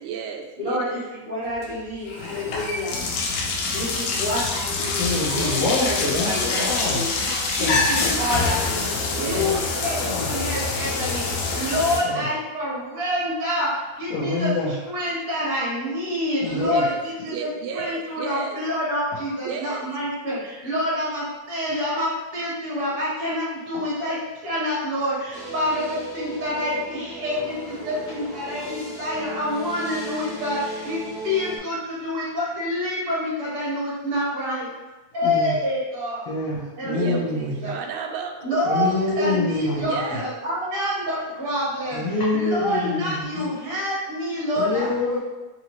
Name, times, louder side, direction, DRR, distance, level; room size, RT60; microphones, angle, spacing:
voice 1, 0.0-1.0 5.3-6.7 9.2-9.8 16.6-18.6 19.4-19.9 36.8-39.0 39.9-40.2, right 6 dB, 80° right, 3 dB, 1.8 m, -33 dB
voice 2, 0.6-2.9 3.7-7.1 7.6-14.5 14.9-24.2 24.4-34.7 35.1-36.3 36.8-37.7 38.4-42.0 42.3-45.2, left 1 dB, 40° right, -8 dB, 0.8 m, -27 dB
sound 1, 1.5-1.7 2.1-12.0, left 3 dB, 90° left, 2.1 m, -25 dB
voice 3, 5.0-7.8 9.3-9.6 10.0-10.3 12.0-12.3 14.1-14.7 16.4-16.9 35.2-35.5 36.3-37.7 38.6-40.2 41.9-43.5 44.6-45.2, left 3 dB, 75° left, -8 dB, 1.5 m, -26 dB
sound 2, 25.3-31.6, right 2 dB, 35° left, 1.4 m, -36 dB
4.8 x 2.7 x 3.0 m, 1.1 s
omnidirectional pair, 3.5 m